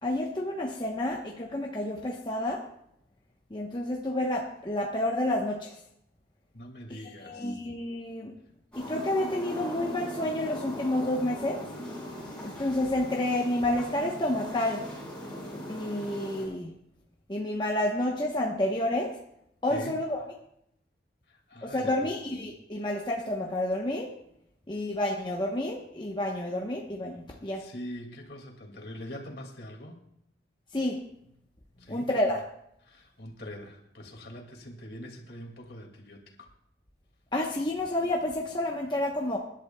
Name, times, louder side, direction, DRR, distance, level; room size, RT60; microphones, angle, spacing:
voice 1, 0.0-2.6 3.5-5.8 6.9-8.3 8.8-11.6 12.4-14.9 15.7-16.7 17.3-19.1 19.6-20.2 21.6-24.1 24.7-27.6 30.7-31.0 31.9-32.4 37.3-39.4, left 1 dB, 25° left, 0 dB, 0.9 m, -29 dB
voice 2, 6.5-7.6 19.7-19.9 21.5-22.1 27.6-30.0 31.8-32.1 32.9-36.5, equal, 60° left, 2 dB, 2.2 m, -43 dB
sound 1, 8.7-16.5, equal, 5° left, 5.8 m, -40 dB
25.0 x 11.5 x 2.3 m, 0.75 s
head